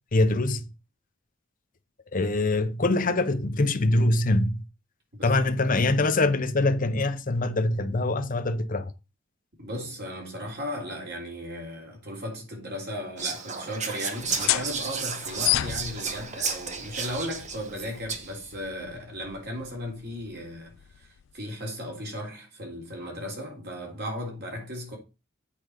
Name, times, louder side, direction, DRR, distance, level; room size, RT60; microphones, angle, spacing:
voice 1, 0.1-0.6 2.1-4.6 5.2-8.9, left 2 dB, 40° left, 0.7 m, -24 dB
voice 2, 5.1-5.9 9.6-21.1 21.3-25.0, equal, 55° right, 3.4 m, -36 dB
Whispering, 13.2-18.5, right 5 dB, 35° right, 1.1 m, -33 dB
sound 1, 14.2-21.4, left 15 dB, 85° left, 0.4 m, -33 dB
8.4 x 4.8 x 5.2 m
head